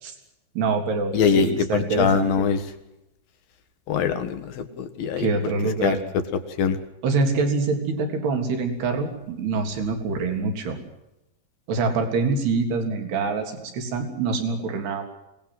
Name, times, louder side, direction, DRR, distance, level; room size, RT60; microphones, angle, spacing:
voice 1, 0.6-2.3 5.2-6.0 7.0-10.8 11.7-15.0, right 4 dB, 65° right, 4 dB, 5.3 m, -25 dB
voice 2, 1.1-1.6 2.0-2.6 3.9-5.3 5.8-6.0 6.6-6.8, left 6 dB, 60° left, 9 dB, 3.0 m, -22 dB
27.0 x 19.5 x 7.9 m, 0.90 s
omnidirectional pair, 5.2 m